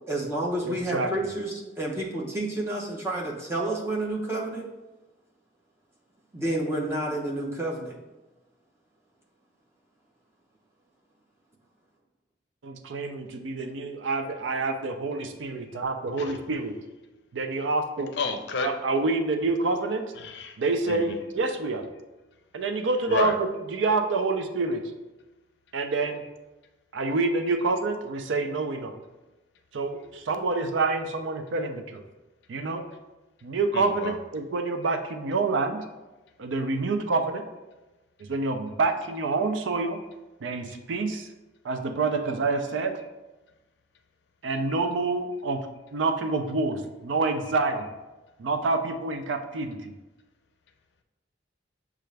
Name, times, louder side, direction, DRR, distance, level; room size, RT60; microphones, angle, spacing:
voice 1, 0.1-4.6 6.3-8.0, right 1 dB, 15° right, -3 dB, 0.7 m, -30 dB
voice 2, 0.6-1.1 12.6-16.7 17.3-18.1 18.6-20.1 20.6-21.9 22.5-24.9 25.7-26.2 26.9-28.9 29.7-32.0 32.5-32.8 33.4-35.8 36.4-37.5 38.2-40.0 40.4-41.3 41.6-43.0 44.4-47.9 48.4-49.9, right 3 dB, 85° right, 7 dB, 0.5 m, -27 dB
voice 3, 18.2-18.7 20.2-20.6 20.9-21.2 23.1-23.4 33.7-34.1, left 4 dB, 65° left, 6 dB, 0.5 m, -31 dB
6.6 x 2.4 x 3.2 m, 1.1 s
head